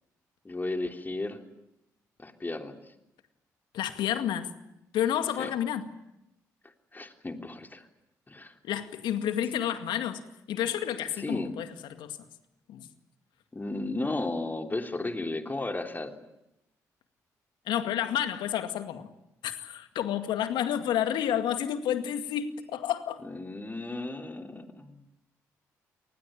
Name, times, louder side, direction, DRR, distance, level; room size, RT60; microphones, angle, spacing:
voice 1, 0.4-1.4 2.2-2.8 5.4-5.5 6.9-7.9 8.3-8.5 11.1-11.5 13.5-16.1 23.2-25.0, left 2 dB, 25° left, 4 dB, 3.3 m, -34 dB
voice 2, 3.7-4.5 4.9-5.9 8.6-10.2 10.5-12.2 12.7-12.9 17.7-19.1 19.4-23.2, left 10 dB, 70° left, 8 dB, 2.1 m, -30 dB
28.0 x 20.0 x 8.8 m, 0.86 s
hypercardioid pair, 45°, 8 cm